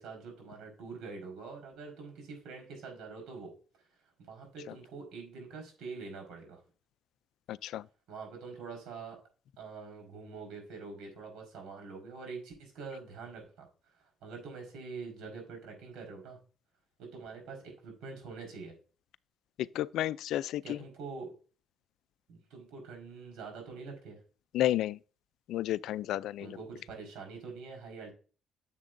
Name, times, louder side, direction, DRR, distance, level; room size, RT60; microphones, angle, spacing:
voice 1, 0.0-3.9 4.2-6.6 8.1-9.2 9.6-16.4 17.0-18.7 20.6-21.3 22.3-24.2 26.4-28.1, right 4 dB, 90° right, 4.6 m, -45 dB
voice 2, 7.5-7.8 19.8-20.6 24.5-25.0 25.5-26.4, left 13 dB, 85° left, 0.4 m, -31 dB
10.5 x 7.4 x 2.6 m
cardioid pair, 90°, 0 cm